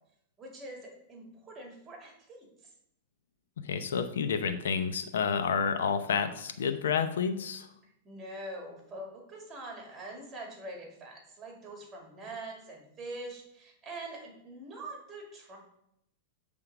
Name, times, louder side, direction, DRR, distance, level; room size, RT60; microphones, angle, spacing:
voice 1, 0.4-2.7 7.8-15.6, right 2 dB, 20° right, 0 dB, 2.4 m, -44 dB
voice 2, 3.6-7.7, left 6 dB, 85° left, 9 dB, 0.7 m, -30 dB
7.8 x 3.7 x 5.9 m, 0.78 s
supercardioid pair, 140°, 0 cm